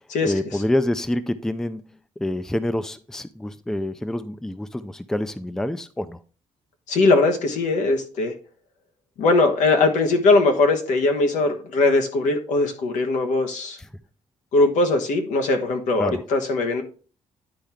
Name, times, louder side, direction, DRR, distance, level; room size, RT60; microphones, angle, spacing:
voice 1, 0.2-1.8 2.2-6.2 13.8-13.9 16.0-16.2, left 1 dB, 5° left, 0.4 m, -27 dB
voice 2, 6.9-8.3 9.2-13.8 14.5-16.8, left 3 dB, 85° left, 1.3 m, -20 dB
10.5 x 4.5 x 3.5 m
cardioid pair, 120°, 12 cm